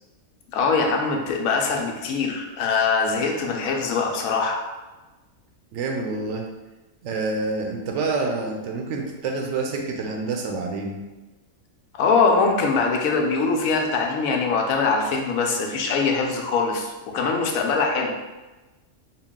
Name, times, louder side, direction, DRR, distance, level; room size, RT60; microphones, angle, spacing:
voice 1, 0.5-4.6 11.9-18.1, left 4 dB, 85° left, 1 dB, 1.0 m, -22 dB
voice 2, 5.7-6.5 7.0-11.0, right 3 dB, 70° right, 2 dB, 0.8 m, -27 dB
3.8 x 2.2 x 3.6 m, 1.1 s
omnidirectional pair, 1.4 m